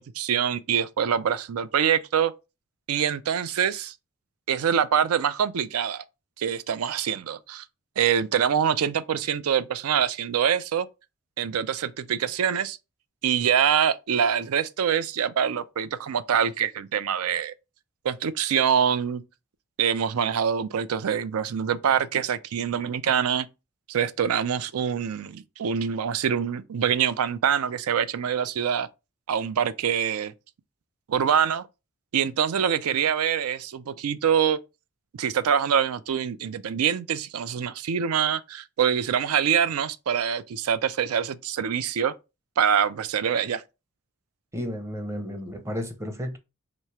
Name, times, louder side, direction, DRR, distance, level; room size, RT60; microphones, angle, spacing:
voice 1, 0.0-2.3 2.9-3.9 4.5-6.0 6.4-7.6 8.0-10.9 11.4-12.8 13.2-17.5 18.0-19.2 19.8-23.5 23.9-28.9 29.3-30.3 31.1-31.7 32.1-34.6 35.1-42.1 42.6-43.6, right 8 dB, 90° right, 0.4 m, -25 dB
voice 2, 44.5-46.4, equal, 15° right, 0.6 m, -32 dB
3.2 x 3.0 x 4.6 m
head